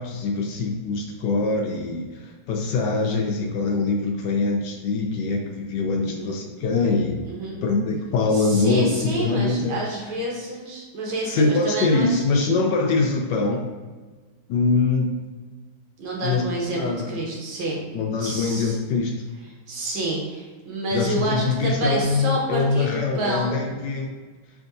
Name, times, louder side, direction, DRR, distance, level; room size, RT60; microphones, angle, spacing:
voice 1, 0.0-7.2 7.6-9.8 11.3-13.7 14.5-15.1 16.2-16.4 16.7-17.2 17.9-19.2 20.9-24.1, left 3 dB, 75° left, 1 dB, 1.1 m, -23 dB
voice 2, 6.0-6.4 6.8-7.6 8.3-12.2 16.0-17.8 18.2-18.8 19.7-23.6, right 1 dB, 85° right, -3 dB, 1.9 m, -29 dB
5.1 x 3.6 x 2.6 m, 1.4 s
omnidirectional pair, 2.1 m